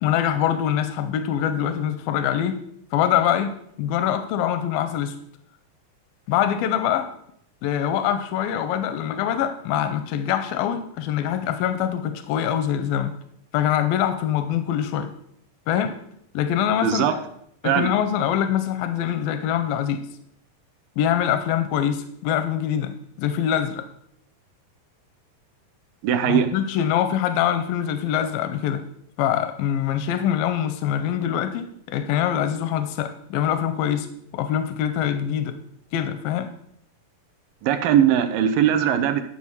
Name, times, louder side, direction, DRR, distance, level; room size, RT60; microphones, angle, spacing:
voice 1, 0.0-2.6 2.9-3.5 3.8-5.2 6.3-7.1 7.6-13.1 13.5-15.1 15.7-15.9 16.3-17.2 17.6-20.0 21.0-23.9 26.3-28.8 29.2-34.1 34.3-35.5 35.9-36.5, left 10 dB, 85° left, 9 dB, 2.4 m, -24 dB
voice 2, 16.8-17.2 17.6-17.9 26.0-26.5 37.6-39.2, right 9 dB, 80° right, 8 dB, 2.5 m, -20 dB
12.0 x 4.9 x 7.0 m, 0.71 s
omnidirectional pair, 4.1 m